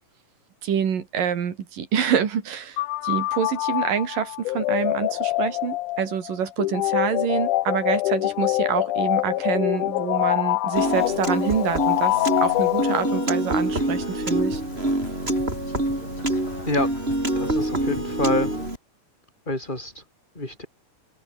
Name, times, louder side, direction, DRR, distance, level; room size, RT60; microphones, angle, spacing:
voice 1, 0.6-14.6, right 8 dB, 85° right, 4.5 m, -26 dB
sound 1, 2.8-13.5, left 17 dB, 75° left, 2.1 m, -25 dB
Piano, 10.8-18.8, right 1 dB, 15° right, 6.8 m, -26 dB
sound 2, 13.7-18.7, left 4 dB, 55° left, 6.8 m, -40 dB
voice 2, 17.4-18.5 19.5-20.0 20.4-20.7, left 2 dB, 15° left, 5.4 m, -27 dB
omnidirectional pair, 3.8 m